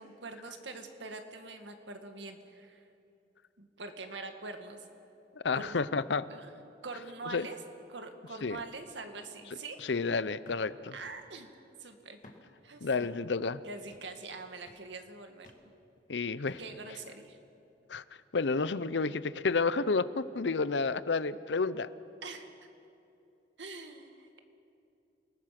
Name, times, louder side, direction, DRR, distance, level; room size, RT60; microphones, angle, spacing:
voice 1, 0.0-2.8 3.6-4.8 5.5-5.8 6.3-6.5 6.8-7.6 7.9-9.8 10.9-11.5 11.8-12.2 12.6-12.9 13.6-15.5 16.6-17.4 22.2-22.5 23.6-24.4, right 3 dB, 85° right, 6 dB, 2.0 m, -44 dB
voice 2, 5.4-6.3 7.3-7.5 8.4-8.6 9.8-10.9 12.8-13.6 16.1-16.6 17.9-18.0 18.3-21.9, left 4 dB, 75° left, 16 dB, 0.7 m, -30 dB
sound 1, 8.6-8.8 9.2-9.3 10.4-10.7 11.0-11.3 12.2-12.5 13.0-13.3 13.9-14.2 14.7-14.9 15.4-15.7 16.5-16.8 17.4-17.5, left 1 dB, 45° left, 2.1 m, -55 dB
28.5 x 19.5 x 6.0 m, 2.7 s
head